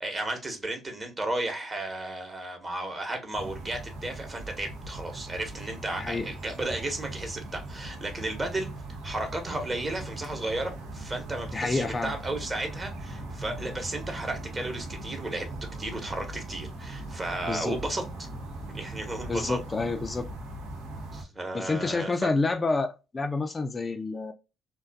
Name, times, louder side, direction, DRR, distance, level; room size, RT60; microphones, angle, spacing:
voice 1, 0.0-8.7 9.0-15.5 15.8-18.0 18.7-19.6 21.1-22.3, right 2 dB, 30° right, 1.0 m, -34 dB
sound 1, 3.3-21.2, right 2 dB, 80° right, 0.6 m, -40 dB
voice 2, 11.5-12.1 17.4-17.8 19.3-20.2 21.5-24.3, left 3 dB, 30° left, 0.4 m, -28 dB
2.4 x 2.3 x 2.3 m
hypercardioid pair, 55°, 0 cm